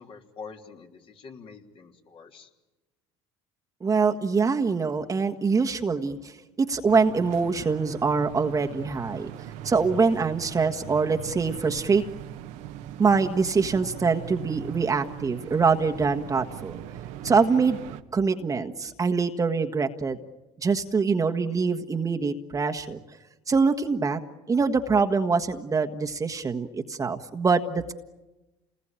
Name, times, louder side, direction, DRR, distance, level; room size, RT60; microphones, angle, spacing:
voice 1, 0.0-2.5, left 5 dB, 45° left, 3 dB, 3.2 m, -45 dB
voice 2, 3.8-9.3 9.6-12.0 13.0-16.8 17.2-17.8 18.1-20.2 20.6-23.0 23.5-24.2 24.5-27.9, right 4 dB, 25° right, 4 dB, 1.5 m, -24 dB
sound 1, 6.9-18.0, right 11 dB, 70° right, 1.3 m, -40 dB
28.0 x 20.5 x 9.0 m, 1.1 s
supercardioid pair, 85°, 13 cm